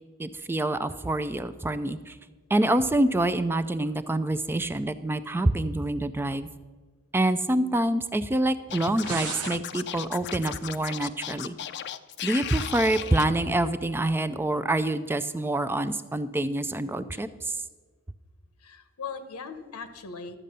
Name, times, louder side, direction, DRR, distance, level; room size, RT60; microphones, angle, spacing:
voice 1, 0.2-2.1 2.5-6.5 7.1-11.6 12.2-17.3, right 1 dB, 10° right, 12 dB, 0.3 m, -26 dB
Scratching (performance technique), 8.7-13.2, left 10 dB, 50° left, 0.5 m, -35 dB
sound 1, 8.7-9.6, right 8 dB, 80° right, 0.5 m, -35 dB
voice 2, 18.6-20.4, left 5 dB, 90° left, 10 dB, 1.0 m, -39 dB
12.0 x 7.5 x 6.6 m, 1.4 s
head